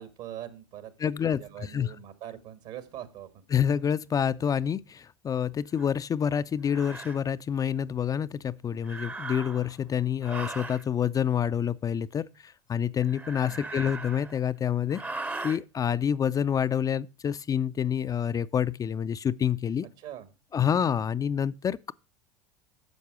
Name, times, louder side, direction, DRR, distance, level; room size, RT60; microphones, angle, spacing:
voice 1, 0.0-3.4 13.5-13.7 20.0-20.3, right 11 dB, 65° right, 1.7 m, -43 dB
voice 2, 1.0-1.9 3.5-19.9 20.5-21.9, left 8 dB, 25° left, 0.4 m, -28 dB
sound 1, 5.8-5.9 6.7-7.2 8.8-9.8 10.2-10.8 13.0-14.5 14.9-15.6, right 3 dB, 10° right, 0.7 m, -38 dB
10.5 x 6.5 x 4.7 m
hypercardioid pair, 80°, 14 cm